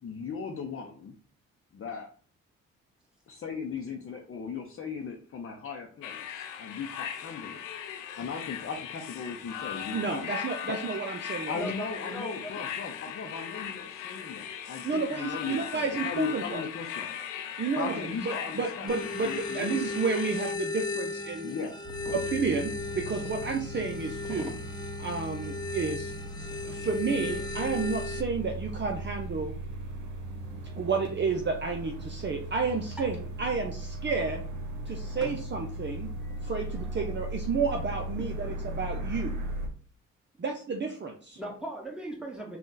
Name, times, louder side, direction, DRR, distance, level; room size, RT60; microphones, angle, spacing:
voice 1, 0.0-1.1 1.7-2.1 3.3-7.6 8.2-10.3 11.5-17.2 17.7-20.0 21.4-21.7, left 5 dB, 45° left, 2 dB, 0.7 m, -38 dB
sound 1, 6.0-20.5, left 9 dB, 85° left, 0.5 m, -39 dB
voice 2, 9.9-11.5 14.8-16.6 17.6-21.5 22.1-24.4 25.0-26.1 26.6-29.5 30.8-34.4 34.9-36.1 36.4-39.3 40.4-41.4, right 4 dB, 35° right, 2 dB, 0.7 m, -31 dB
voice 3, 11.5-12.6 18.3-18.4 22.0-22.1 23.1-23.2 24.3-24.6 33.0-33.1 35.2-35.3 36.2-36.4 37.6-37.8 38.2-38.6 41.4-42.6, right 1 dB, ahead, -1 dB, 1.8 m, -40 dB
sound 2, 18.9-28.2, left 3 dB, 15° left, 0.8 m, -36 dB
sound 3, 21.8-39.7, right 1 dB, 65° right, 0.9 m, -38 dB
3.8 x 2.5 x 3.9 m, 0.43 s
supercardioid pair, 50°, 31 cm